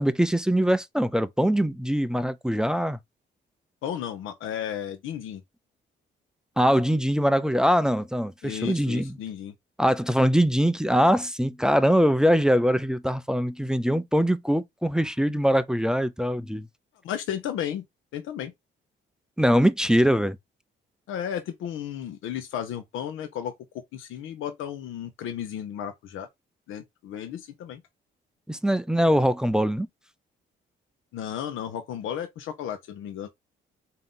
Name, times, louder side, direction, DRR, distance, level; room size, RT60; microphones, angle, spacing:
voice 1, 0.0-3.0 6.6-9.2 9.8-16.7 19.4-20.4 28.5-29.9, equal, 5° right, 0.3 m, -22 dB
voice 2, 3.8-5.4 8.4-9.5 17.0-17.8 18.1-18.5 21.1-23.5 23.9-26.3 26.7-27.8 31.1-33.3, left 9 dB, 85° left, 0.7 m, -33 dB
3.7 x 2.8 x 3.6 m
cardioid pair, 90°, 20 cm